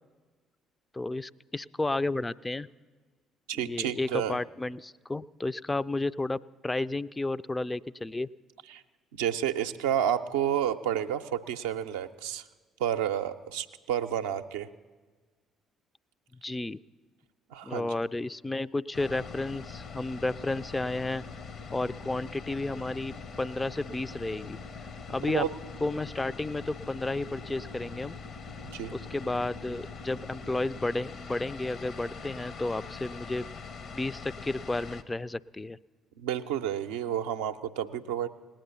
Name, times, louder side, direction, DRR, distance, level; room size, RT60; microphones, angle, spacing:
voice 1, 0.9-2.7 3.6-8.3 16.4-16.8 17.6-21.2 21.7-24.6 25.1-25.5 25.8-28.2 28.9-33.5 33.9-35.8, left 2 dB, 20° left, 17 dB, 0.3 m, -32 dB
voice 2, 3.5-4.4 8.7-8.8 9.1-12.4 12.8-14.7 17.5-17.9 25.3-25.5 28.6-28.9 36.2-38.3, right 10 dB, 75° right, 7 dB, 0.5 m, -30 dB
sound 1, 18.9-35.0, left 4 dB, 55° left, 0.7 m, -43 dB
18.5 x 8.9 x 6.8 m, 1.4 s
hypercardioid pair, 50°, 0 cm